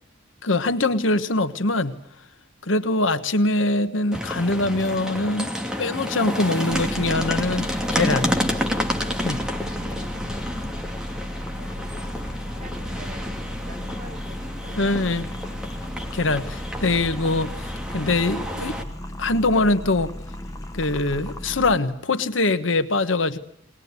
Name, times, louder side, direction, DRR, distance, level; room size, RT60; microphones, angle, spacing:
voice 1, 0.4-2.0 2.6-5.5 5.8-8.3 9.2-9.4 14.8-15.3 16.1-18.8 19.2-20.1 20.7-23.4, left 2 dB, 80° left, 10 dB, 1.3 m, -23 dB
sound 1, 4.1-18.8, equal, 5° right, 2.6 m, -30 dB
sound 2, 6.7-21.8, left 1 dB, 20° left, 1.4 m, -35 dB
voice 2, 9.5-10.4 11.1-15.6, right 1 dB, 35° right, 2 dB, 5.8 m, -46 dB
21.5 x 20.0 x 9.6 m, 0.67 s
head